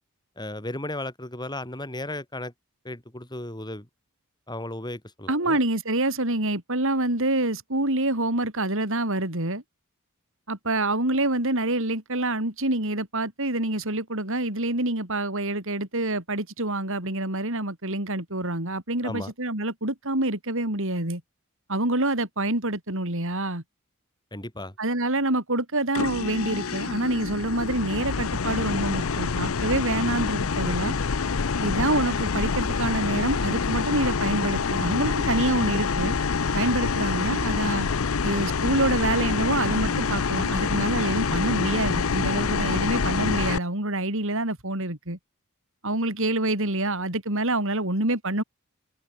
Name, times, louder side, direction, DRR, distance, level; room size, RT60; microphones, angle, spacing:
voice 1, 0.4-2.5 2.8-3.9 4.5-5.6 19.0-19.3 24.3-24.7, left 1 dB, 20° left, 7.2 m, -35 dB
voice 2, 5.3-9.6 10.5-21.2 21.7-23.6 24.8-31.0 31.6-36.1 36.5-37.9 38.2-45.2 45.8-48.4, right 2 dB, 65° right, 5.7 m, -26 dB
sound 1, 25.9-43.6, left 5 dB, 70° left, 0.7 m, -26 dB
open air
head